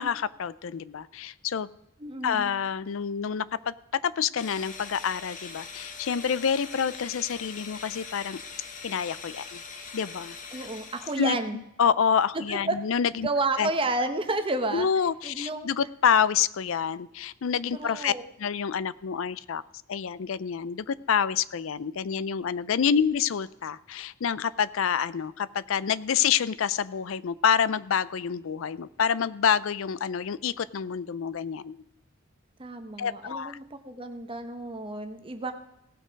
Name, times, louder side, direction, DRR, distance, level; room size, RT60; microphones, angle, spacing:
voice 1, 0.0-1.7 2.2-3.7 4.0-8.4 8.8-9.6 9.9-10.4 11.2-11.4 11.8-13.3 13.6-13.7 14.7-18.1 18.4-19.6 19.9-31.8 33.0-33.6, left 7 dB, 65° left, 18 dB, 0.4 m, -27 dB
voice 2, 2.0-2.5 10.5-11.6 12.5-12.8 13.2-14.9 15.2-15.7 17.7-18.2 32.6-35.5, right 2 dB, 25° right, 7 dB, 0.9 m, -31 dB
sound 1, 4.4-11.3, left 5 dB, 40° left, 1.2 m, -42 dB
17.5 x 6.3 x 5.2 m, 0.83 s
head